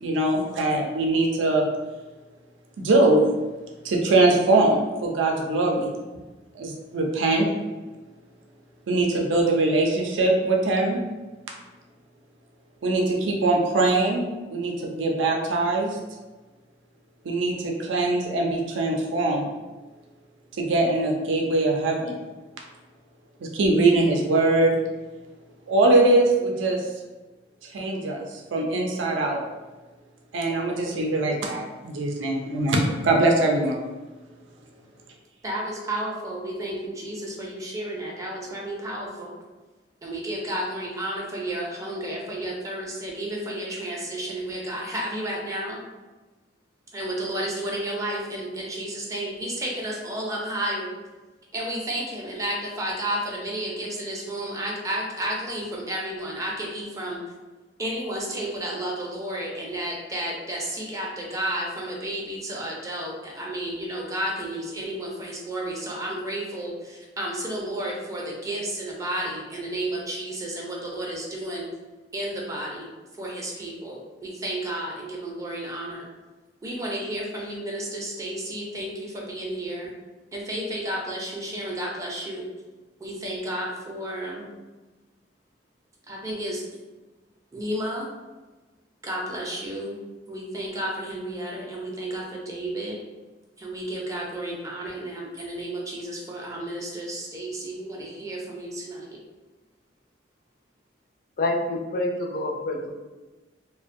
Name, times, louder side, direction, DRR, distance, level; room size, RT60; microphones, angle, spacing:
voice 1, 0.0-1.7 2.8-3.3 3.8-5.9 6.5-7.5 8.9-11.0 12.8-16.0 17.2-19.5 20.6-22.1 23.4-24.8 25.7-26.8 27.7-29.4 30.3-33.8, right 2 dB, 85° right, 1 dB, 0.4 m, -22 dB
voice 2, 35.4-39.4 40.0-45.8 46.9-50.9 51.5-57.2 57.8-71.7 72.1-72.9 73.2-76.1 76.6-79.9 80.3-82.5 83.0-84.5 86.1-86.6 87.5-88.1 89.0-90.0 90.3-93.0 93.6-99.2, right 1 dB, 15° right, -2 dB, 0.4 m, -32 dB
voice 3, 101.4-102.9, left 2 dB, 50° left, 1 dB, 0.4 m, -27 dB
2.5 x 2.1 x 2.5 m, 1.2 s
head